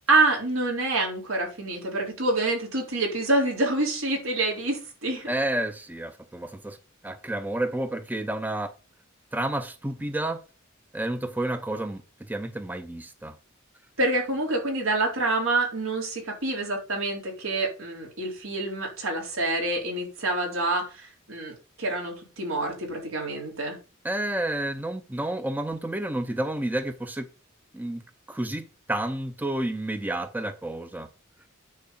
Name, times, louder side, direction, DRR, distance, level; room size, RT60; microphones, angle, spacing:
voice 1, 0.1-5.3 14.0-23.8, right 2 dB, 80° right, 4.0 m, -27 dB
voice 2, 5.3-6.8 7.0-8.7 9.3-10.4 10.9-12.0 12.3-13.4 24.0-27.3 27.7-28.0 28.3-31.1, right 1 dB, 10° right, 0.6 m, -30 dB
9.6 x 4.6 x 6.8 m
head